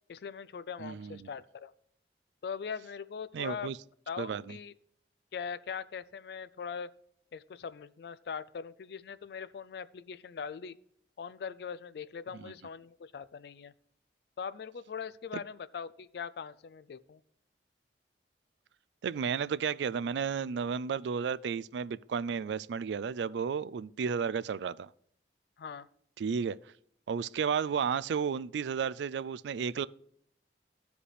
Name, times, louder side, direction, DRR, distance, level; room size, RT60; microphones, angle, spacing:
voice 1, 0.1-1.7 2.4-3.7 4.1-4.7 5.3-6.9 7.3-10.8 11.2-13.7 14.4-17.2 25.6-25.9, left 6 dB, 65° left, 0.3 m, -41 dB
voice 2, 0.8-1.3 3.3-3.8 4.2-4.6 12.3-12.5 19.0-24.9 26.2-26.6 27.1-29.9, right 6 dB, 80° right, 0.3 m, -33 dB
14.0 x 5.0 x 3.3 m
head